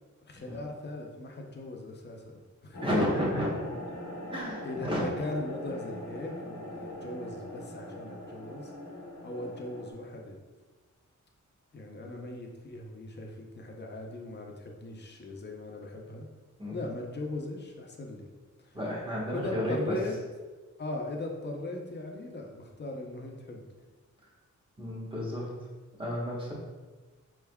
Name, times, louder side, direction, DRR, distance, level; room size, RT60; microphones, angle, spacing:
voice 1, 0.3-3.2 4.6-8.7 9.2-10.4 11.7-16.3 16.7-18.3 18.6-18.8 19.3-20.2 20.8-23.7, left 2 dB, 35° left, 1 dB, 0.6 m, -39 dB
sound 1, 2.7-9.9, left 1 dB, 90° left, 1.0 m, -41 dB
voice 2, 2.8-3.5 4.3-5.1 16.6-16.8 18.7-19.9 24.8-25.5 26.0-26.5, equal, 15° right, -5 dB, 1.1 m, -31 dB
5.2 x 3.4 x 2.3 m, 1.3 s
wide cardioid pair, 130°, 30 cm